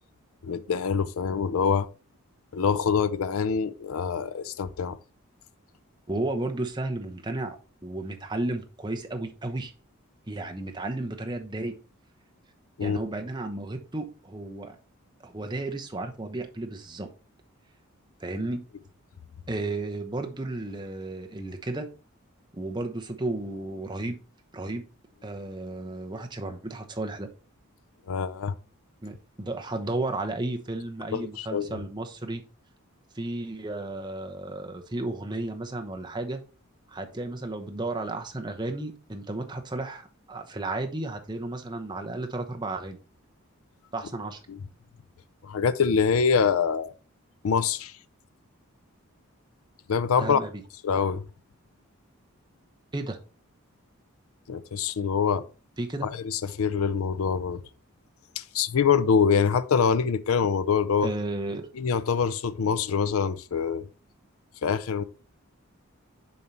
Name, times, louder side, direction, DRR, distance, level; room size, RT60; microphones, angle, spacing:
voice 1, 0.4-1.9 2.5-5.0 12.8-13.0 28.1-28.5 31.1-31.8 44.5-44.6 45.4-46.9 47.4-47.9 49.9-50.4 50.8-51.2 54.5-55.5 56.0-57.6 58.4-61.1 61.8-63.9 64.6-65.0, left 6 dB, 75° left, 0.5 m, -25 dB
voice 2, 6.1-7.6 7.8-9.7 10.3-11.7 12.8-14.8 15.2-17.1 18.2-18.6 19.5-21.9 22.5-24.2 24.5-24.8 25.2-27.3 29.0-32.4 33.1-36.4 36.9-43.0 43.9-44.4 50.2-50.5 52.9-53.2 55.8-56.1 61.0-61.7, right 2 dB, 20° right, 0.8 m, -33 dB
7.2 x 4.6 x 4.1 m
head